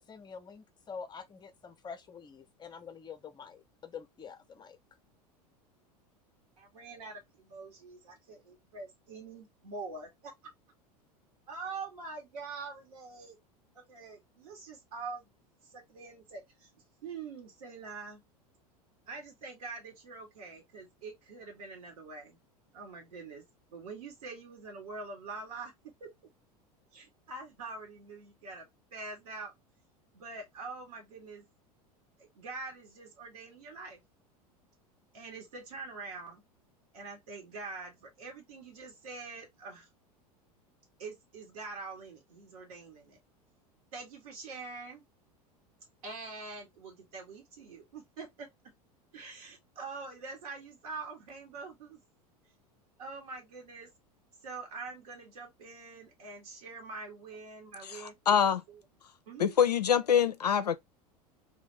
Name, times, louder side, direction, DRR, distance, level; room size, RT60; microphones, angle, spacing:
voice 1, 0.0-4.8, left 6 dB, 20° left, 0.6 m, -46 dB
voice 2, 6.6-10.3 11.5-13.4 13.7-15.3 15.6-16.7 17.0-18.2 19.1-22.4 22.7-25.7 26.0-26.1 26.9-29.5 30.1-31.5 32.2-34.0 35.1-36.4 36.9-39.9 41.0-43.2 43.9-45.0 46.0-48.5 49.1-52.0 53.0-53.9 54.4-58.4 58.7-58.8 59.3-59.6, right 4 dB, 70° right, 1.5 m, -45 dB
voice 3, 57.9-58.6 59.4-60.8, left 8 dB, 85° left, 0.4 m, -25 dB
2.7 x 2.5 x 3.1 m
figure-of-eight pair, 80°, 20 cm